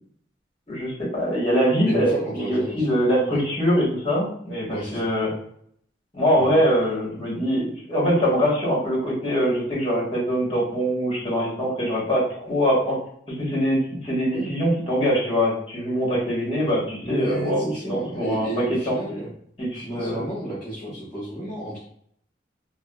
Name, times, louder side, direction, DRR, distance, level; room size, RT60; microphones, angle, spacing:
voice 1, 0.7-5.3 6.1-13.0 13.3-19.0 19.6-20.2, equal, 30° left, -6 dB, 1.2 m, -23 dB
voice 2, 1.9-3.0 3.3-3.4 4.7-5.1 6.3-6.5 14.3-14.5 17.0-19.3 19.7-21.9, right 1 dB, 5° left, -13 dB, 1.0 m, -32 dB
3.4 x 2.1 x 2.2 m, 0.65 s
head